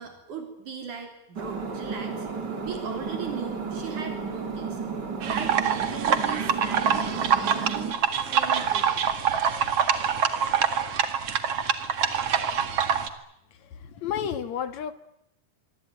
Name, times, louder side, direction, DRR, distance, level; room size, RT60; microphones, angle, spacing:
voice 1, 0.0-2.3 2.7-4.9 5.3-9.1, right 6 dB, 75° right, 5 dB, 5.0 m, -39 dB
sound 1, 1.4-7.9, right 5 dB, 35° right, 3.3 m, -33 dB
sound 2, 5.2-13.1, right 7 dB, 50° right, 2.7 m, -25 dB
voice 2, 13.9-14.9, left 8 dB, 65° left, 12 dB, 2.9 m, -30 dB
26.0 x 24.0 x 9.3 m, 0.78 s
omnidirectional pair, 3.5 m